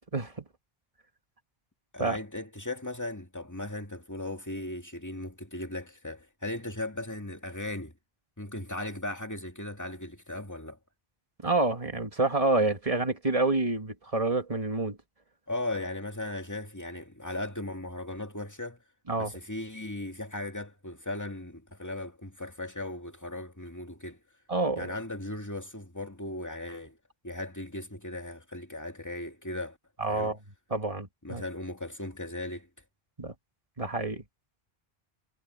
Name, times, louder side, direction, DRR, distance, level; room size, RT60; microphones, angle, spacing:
voice 1, 0.1-0.4 2.0-2.2 11.4-15.0 19.1-19.3 24.5-24.9 30.0-30.4 30.7-31.4 33.2-33.3 33.8-34.2, right 2 dB, 35° right, 2.1 m, -28 dB
voice 2, 1.9-7.9 8.4-10.8 15.5-18.8 19.2-24.2 24.8-27.0 27.2-29.8 30.1-30.3 31.2-32.7, left 1 dB, 15° left, 2.2 m, -37 dB
omnidirectional pair, 1.0 m